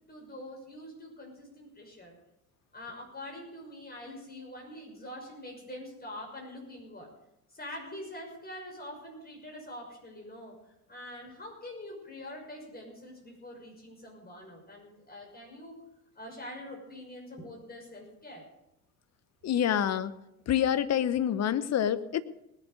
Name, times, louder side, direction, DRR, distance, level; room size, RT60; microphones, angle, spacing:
voice 1, 0.1-2.1 2.7-7.1 7.5-10.6 10.9-15.8 16.2-18.5, left 1 dB, 20° left, 0 dB, 6.0 m, -44 dB
voice 2, 19.4-20.1 20.5-22.2, left 9 dB, 35° left, 13 dB, 1.0 m, -27 dB
19.5 x 7.3 x 6.7 m, 0.85 s
hypercardioid pair, 70°, 45 cm